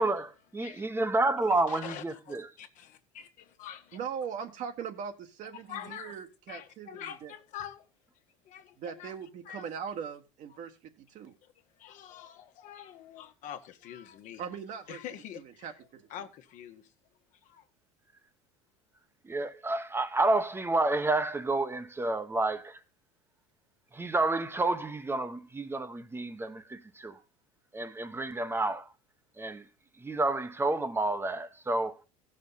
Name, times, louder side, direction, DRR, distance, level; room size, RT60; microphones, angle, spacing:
voice 1, 0.0-2.5 19.2-22.8 23.9-27.2 27.7-28.9 29.4-29.6 30.0-32.0, right 2 dB, 15° right, 1.1 m, -30 dB
voice 2, 1.4-4.0 5.5-6.2 6.5-7.9 8.4-9.1 9.4-9.7 10.5-10.6 11.4-11.5 11.8-14.4 14.9-15.7 16.1-16.9 17.4-17.6, left 10 dB, 55° left, 1.4 m, -45 dB
voice 3, 3.9-7.3 8.8-11.3 14.4-15.0 15.3-16.1, right 7 dB, 55° right, 1.6 m, -40 dB
16.0 x 6.5 x 4.1 m
supercardioid pair, 90°, 15 cm